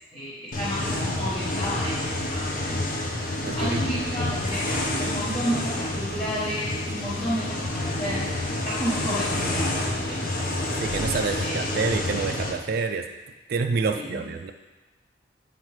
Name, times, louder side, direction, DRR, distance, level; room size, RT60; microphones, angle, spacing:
voice 1, 0.1-2.9 3.5-10.4 11.4-11.7 13.9-14.2, equal, 25° left, -10 dB, 1.2 m, -32 dB
sound 1, 0.5-12.5, left 1 dB, 45° left, 0.7 m, -28 dB
voice 2, 3.4-4.0 10.8-13.1 13.5-14.5, right 4 dB, 50° right, 5 dB, 0.3 m, -28 dB
8.5 x 4.5 x 3.2 m, 1.2 s
head